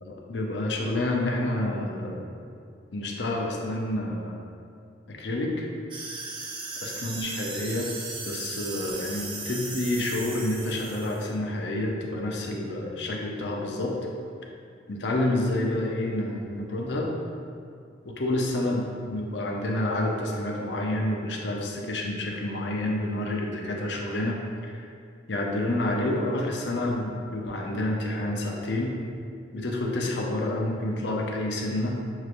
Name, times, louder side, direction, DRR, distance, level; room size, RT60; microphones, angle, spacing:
voice 1, 0.0-2.4 2.9-4.4 5.1-5.7 6.8-7.9 8.2-13.9 14.9-17.1 18.0-24.4 24.7-24.9 25.3-28.9 29.5-32.0, left 1 dB, 65° left, -1 dB, 0.6 m, -29 dB
sound 1, 5.9-11.3, right 3 dB, 25° right, 0.4 m, -37 dB
6.4 x 3.1 x 2.5 m, 2.3 s
head